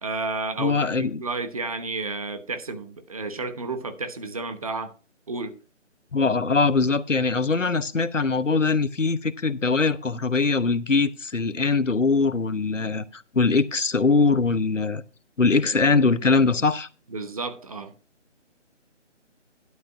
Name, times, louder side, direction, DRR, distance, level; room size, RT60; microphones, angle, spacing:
voice 1, 0.0-4.9 5.3-5.5 17.1-17.9, right 3 dB, 30° right, 9 dB, 1.1 m, -31 dB
voice 2, 0.6-1.2 6.1-15.0 15.4-16.9, left 4 dB, 85° left, 16 dB, 0.9 m, -22 dB
11.5 x 5.2 x 5.9 m, 0.34 s
figure-of-eight pair, 155°, 37 cm